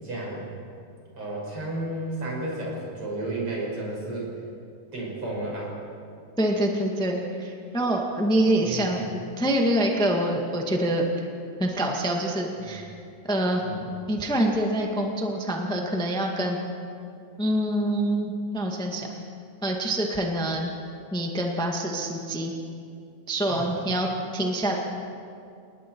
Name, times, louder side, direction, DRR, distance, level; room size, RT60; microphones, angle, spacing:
voice 1, 0.0-0.5 1.2-4.3 4.9-5.7 8.6-9.0 12.6-12.7 13.6-13.9 23.5-23.7, right 2 dB, 40° right, -4 dB, 7.2 m, -32 dB
voice 2, 6.4-11.3 11.6-12.9 13.3-13.6 14.1-16.6 17.4-19.1 19.6-20.7 21.1-22.5 23.3-24.8, right 1 dB, 5° left, 0 dB, 0.5 m, -26 dB
29.0 x 19.5 x 4.7 m, 2.5 s
omnidirectional pair, 3.8 m